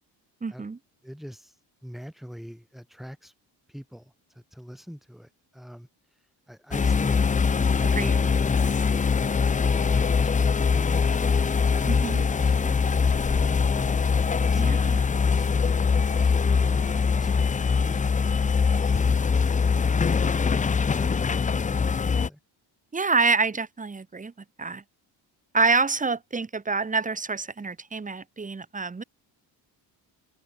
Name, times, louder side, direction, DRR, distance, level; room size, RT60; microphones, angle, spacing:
voice 1, 0.4-0.8 7.8-8.2 11.8-12.2 14.6-15.0 22.9-24.3 24.6-24.8 25.5-29.0, right 4 dB, 20° right, 1.3 m, -27 dB
voice 2, 1.0-1.5 1.8-3.3 3.7-5.9 6.5-7.2 7.5-8.8 9.4-13.9 14.4-18.5 18.9-19.1 19.4-21.8 22.1-22.4, equal, ahead, 5.2 m, -43 dB
sound 1, 6.7-22.3, left 5 dB, 20° left, 0.5 m, -23 dB
cardioid pair, 115°, 44 cm